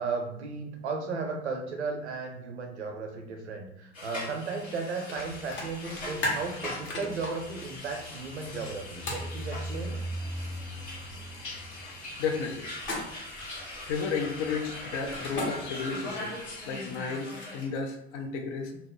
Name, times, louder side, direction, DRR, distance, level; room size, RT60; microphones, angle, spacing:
voice 1, 0.0-10.0 15.1-15.3 18.7-18.8, right 4 dB, 85° right, 3 dB, 0.5 m, -35 dB
sound 1, 3.9-17.7, left 1 dB, 85° left, 1.3 m, -41 dB
sound 2, 5.1-5.2 5.5-7.3 9.1-9.3 12.8-13.3 15.1-15.5 16.8-17.8, left 2 dB, 35° left, 1.0 m, -34 dB
sound 3, 5.2-15.7, right 1 dB, 5° left, 0.3 m, -43 dB
voice 2, 12.2-12.7 13.9-16.3 16.7-18.7, left 5 dB, 60° left, 5 dB, 0.5 m, -33 dB
2.4 x 2.0 x 3.5 m, 0.80 s
figure-of-eight pair, 70°, 33 cm